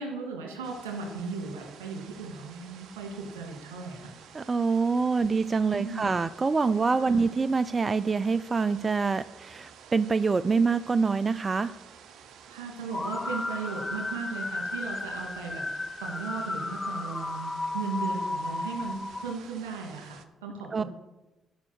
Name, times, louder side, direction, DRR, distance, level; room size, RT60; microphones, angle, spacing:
voice 1, 0.0-4.1 5.7-6.1 7.0-7.3 12.5-20.8, right 4 dB, 90° right, 1 dB, 2.3 m, -37 dB
sound 1, 0.6-20.2, right 7 dB, 70° right, 0.8 m, -51 dB
voice 2, 4.3-11.7 20.7-20.8, right 4 dB, 35° right, 14 dB, 0.4 m, -25 dB
sound 2, 12.9-19.3, left 2 dB, 25° left, 0.5 m, -34 dB
13.0 x 5.5 x 6.3 m, 1.0 s
hypercardioid pair, 45°, 0 cm